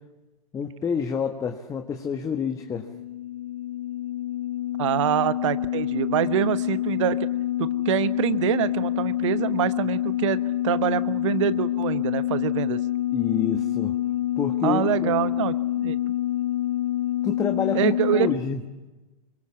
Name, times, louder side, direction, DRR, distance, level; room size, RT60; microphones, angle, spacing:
voice 1, 0.5-2.9 13.1-13.9 14.4-15.1 17.2-18.6, left 6 dB, 15° left, 5 dB, 1.5 m, -28 dB
sound 1, 2.2-18.4, left 13 dB, 65° left, 1.8 m, -27 dB
voice 2, 4.8-7.3 7.6-10.4 10.6-12.8 14.6-16.0 17.7-18.3, right 12 dB, 50° right, 13 dB, 1.3 m, -25 dB
27.0 x 24.0 x 7.3 m, 1.1 s
figure-of-eight pair, 110°, 19 cm